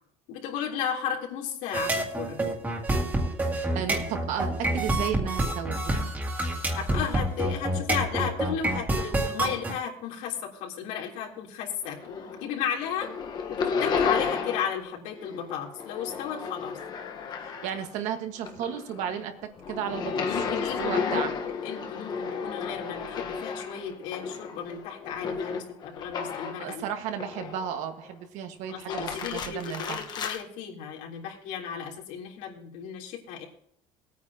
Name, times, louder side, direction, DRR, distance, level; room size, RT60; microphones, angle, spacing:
voice 1, 0.3-2.5 6.7-13.1 13.5-16.8 20.2-21.3 21.6-26.8 28.7-33.6, left 8 dB, 80° left, -2 dB, 3.5 m, -34 dB
sound 1, 1.7-9.7, right 1 dB, 15° right, 2.0 m, -28 dB
voice 2, 3.7-6.1 17.4-21.3 26.6-30.1, right 8 dB, 65° right, 6 dB, 1.6 m, -34 dB
sound 2, 11.8-12.5 12.8-14.8 15.1-18.0 18.4-26.7 27.2-27.9 28.7-30.4, left 5 dB, 35° left, 1.3 m, -33 dB
19.5 x 9.3 x 2.9 m, 0.66 s
cardioid pair, 170°, 13 cm